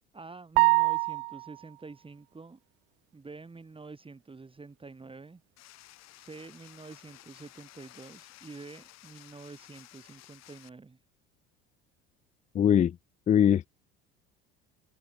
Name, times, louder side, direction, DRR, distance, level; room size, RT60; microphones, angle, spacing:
voice 1, 0.1-2.6 3.1-5.4 6.1-11.0, right 4 dB, 15° right, 2.8 m, -47 dB
sound 1, 0.6-1.6, right 31 dB, 75° right, 0.4 m, -24 dB
sound 2, 5.6-10.7, left 16 dB, 60° left, 5.2 m, -54 dB
voice 2, 12.5-12.9 13.3-13.7, left 9 dB, 25° left, 0.4 m, -21 dB
hypercardioid pair, 80°, 30 cm